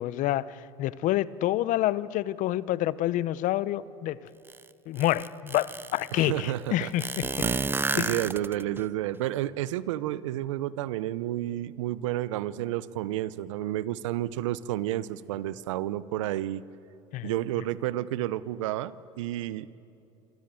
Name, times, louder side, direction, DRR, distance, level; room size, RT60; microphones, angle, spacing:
voice 1, 0.0-4.2 4.9-7.3 8.0-8.2 17.1-17.3, left 14 dB, 55° left, 18 dB, 0.9 m, -28 dB
sound 1, 4.5-4.6 5.0-6.1 7.0-8.8, right 3 dB, 15° right, 0.7 m, -30 dB
voice 2, 6.1-6.9 7.4-16.6 17.2-19.8, right 14 dB, 80° right, 17 dB, 0.8 m, -31 dB
26.5 x 26.0 x 7.7 m, 2.9 s
hypercardioid pair, 90°, 16 cm